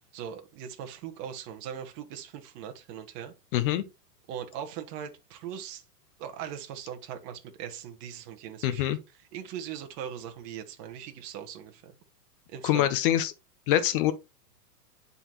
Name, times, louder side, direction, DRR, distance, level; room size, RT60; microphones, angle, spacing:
voice 1, 0.1-3.3 4.3-5.8 6.2-11.9 12.5-12.9, right 9 dB, 35° right, 1.2 m, -40 dB
voice 2, 3.5-3.8 8.6-9.0 12.6-13.3 13.7-14.1, left 12 dB, 35° left, 0.6 m, -24 dB
9.8 x 4.0 x 2.9 m
hypercardioid pair, 120°, 48 cm